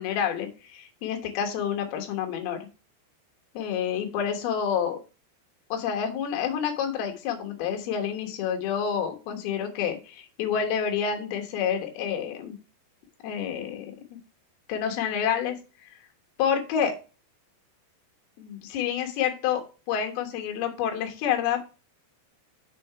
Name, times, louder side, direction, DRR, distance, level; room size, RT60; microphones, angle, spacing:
voice 1, 0.0-2.6 3.5-5.0 5.7-12.6 13.2-13.9 14.7-15.6 16.4-16.9 18.4-19.6 19.9-21.6, left 8 dB, 65° left, 3 dB, 2.9 m, -28 dB
6.6 x 4.3 x 5.7 m, 0.32 s
omnidirectional pair, 5.1 m